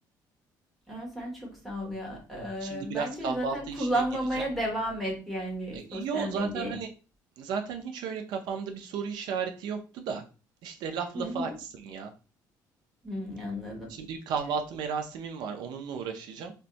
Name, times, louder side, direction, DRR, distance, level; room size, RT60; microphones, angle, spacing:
voice 1, 0.9-6.8 11.1-11.5 13.0-13.9, equal, ahead, -2 dB, 1.1 m, -33 dB
voice 2, 2.6-4.0 5.7-6.9 7.4-10.2 10.6-12.1 13.9-16.5, right 6 dB, 75° right, 6 dB, 0.5 m, -34 dB
2.6 x 2.2 x 3.9 m, 0.33 s
cardioid pair, 160°, 8 cm